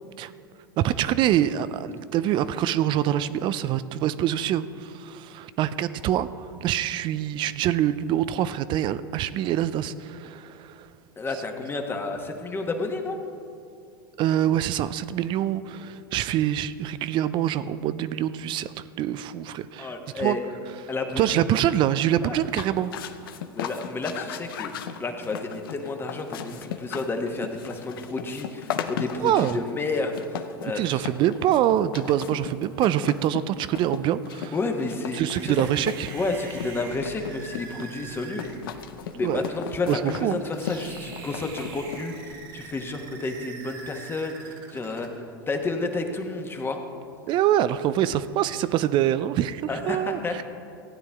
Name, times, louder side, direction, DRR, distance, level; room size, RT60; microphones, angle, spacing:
voice 1, 0.8-10.9 14.2-19.9 20.2-20.4 21.2-22.9 29.1-29.6 30.7-34.5 35.1-36.2 39.2-39.4 39.9-40.4 47.3-50.4, right 11 dB, 40° right, 15 dB, 0.4 m, -25 dB
voice 2, 11.2-13.2 19.8-20.4 20.9-21.5 22.2-22.4 23.5-24.7 25.0-31.0 34.5-35.5 36.1-38.8 39.1-45.1 45.5-46.8 49.7-50.4, left 3 dB, 20° left, 4 dB, 1.2 m, -31 dB
sound 1, 22.4-42.3, left 9 dB, 75° left, 0.7 m, -37 dB
sound 2, 35.3-45.1, right 5 dB, 65° right, 1.7 m, -43 dB
15.5 x 9.5 x 3.5 m, 2.4 s
hypercardioid pair, 95°, 12 cm